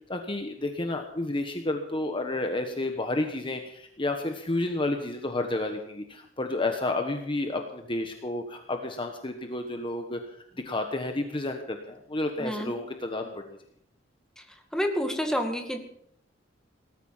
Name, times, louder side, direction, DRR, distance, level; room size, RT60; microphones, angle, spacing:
voice 1, 0.1-10.2 10.6-13.4, left 2 dB, 25° left, 5 dB, 1.3 m, -31 dB
voice 2, 12.4-12.8 14.7-15.8, equal, 5° left, 4 dB, 2.1 m, -28 dB
19.0 x 13.5 x 5.7 m, 0.71 s
head